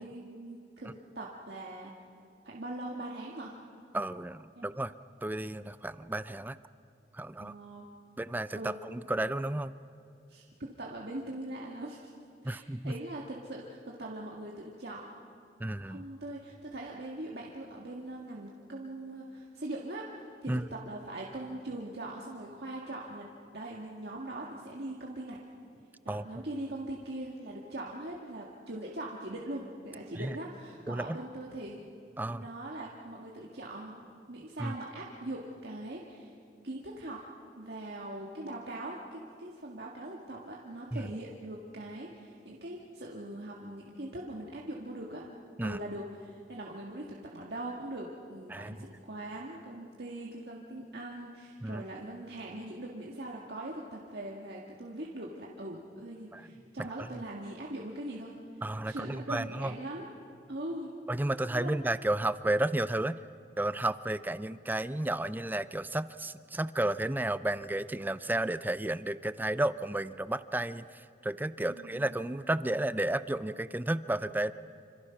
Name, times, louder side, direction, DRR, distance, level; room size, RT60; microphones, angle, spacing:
voice 1, 0.0-1.9 2.4-3.6 4.6-4.7 7.4-7.9 8.5-8.7 10.3-12.1 12.4-15.0 15.9-20.1 20.4-25.4 26.0-31.8 32.3-36.3 36.6-37.2 37.6-45.3 45.6-60.1 60.5-60.9 61.5-61.7 71.6-72.2, right 1 dB, 65° right, -2 dB, 1.9 m, -41 dB
voice 2, 3.9-4.9 5.2-6.6 7.1-7.5 8.2-9.7 12.4-12.9 15.6-16.0 20.5-20.6 26.1-26.3 30.2-30.4 30.9-31.2 32.2-32.5 34.6-34.7 40.9-41.1 45.6-45.8 48.5-48.8 51.6-51.8 56.3-56.4 57.0-57.1 58.6-59.8 61.1-63.2 63.6-74.5, right 1 dB, 10° right, 14 dB, 0.5 m, -32 dB
27.0 x 26.0 x 5.9 m, 2.5 s
head